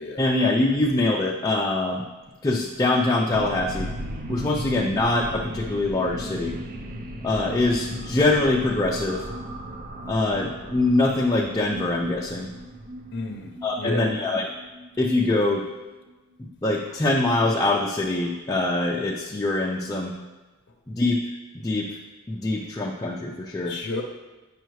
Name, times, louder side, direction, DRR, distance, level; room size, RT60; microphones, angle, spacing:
voice 1, 0.2-2.1 2.4-3.9 4.3-6.6 7.2-9.2 10.1-12.5 13.6-14.5 15.0-15.7 16.4-20.1 20.9-22.0 22.3-23.8, left 2 dB, 15° left, -1 dB, 0.4 m, -24 dB
sound 1, 3.3-16.1, right 1 dB, 40° right, 0.6 m, -37 dB
voice 2, 13.1-14.2 23.6-24.0, left 3 dB, 55° left, 1 dB, 0.6 m, -32 dB
9.0 x 5.5 x 3.1 m, 1.2 s
head